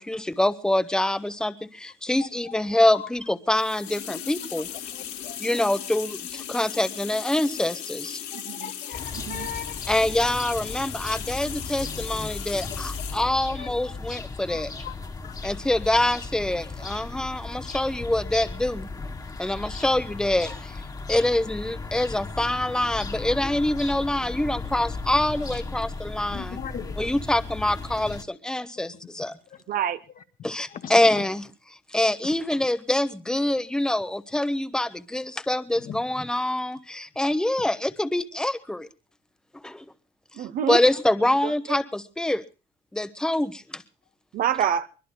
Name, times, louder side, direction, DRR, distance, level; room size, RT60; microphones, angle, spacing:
voice 1, 0.0-4.7 5.4-8.2 9.9-14.7 15.4-18.9 19.4-20.8 21.1-26.6 27.0-29.4 30.4-31.4 31.9-38.9 39.6-39.8 40.7-42.4 42.9-43.8, left 1 dB, 5° left, 0.9 m, -25 dB
sound 1, 3.5-13.3, left 10 dB, 80° left, 2.7 m, -37 dB
voice 2, 4.9-5.4 8.3-10.0 11.9-12.1 12.7-12.8 13.5-13.7 14.5-15.5 26.3-27.0 28.9-29.0 29.5-29.6 30.7-31.2 35.8-36.0, left 9 dB, 55° left, 1.5 m, -39 dB
voice 3, 8.3-8.7 9.1-9.5 29.7-30.0 40.3-40.8 41.4-41.8 44.3-44.9, right 9 dB, 55° right, 0.9 m, -27 dB
sound 2, 8.9-28.2, left 3 dB, 20° left, 1.5 m, -36 dB
24.0 x 20.5 x 2.2 m
cardioid pair, 110°, 17 cm